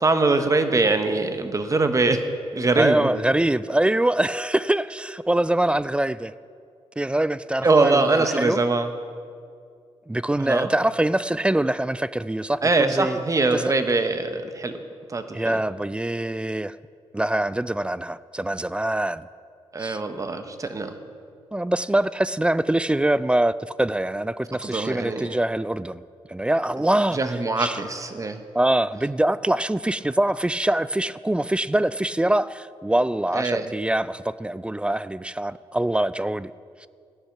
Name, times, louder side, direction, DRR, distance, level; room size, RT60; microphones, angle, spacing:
voice 1, 0.0-2.2 2.5-3.1 7.6-8.9 10.4-10.7 12.6-14.8 15.1-15.6 19.7-21.0 24.6-25.4 27.1-28.4 33.3-33.7, right 3 dB, 30° right, 8 dB, 1.1 m, -23 dB
voice 2, 2.7-6.3 7.0-8.6 10.1-13.2 13.5-13.6 15.3-16.8 17.1-19.3 19.8-20.0 21.5-26.0 26.3-27.2 27.6-27.8 28.5-36.5 36.8-36.9, right 1 dB, 10° right, 17 dB, 0.3 m, -24 dB
13.5 x 10.0 x 5.9 m, 2.3 s
cardioid pair, 85°, 11 cm